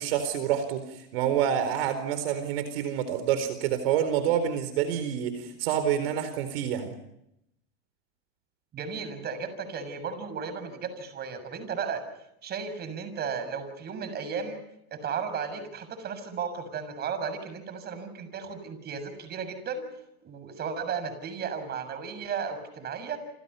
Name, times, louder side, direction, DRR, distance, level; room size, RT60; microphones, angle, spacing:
voice 1, 0.0-6.9, right 9 dB, 65° right, 10 dB, 4.3 m, -27 dB
voice 2, 8.7-12.0 12.4-14.6 14.9-19.8 20.2-23.2, right 6 dB, 30° right, 10 dB, 7.0 m, -34 dB
29.0 x 28.5 x 5.7 m, 0.79 s
hypercardioid pair, 120°, 31 cm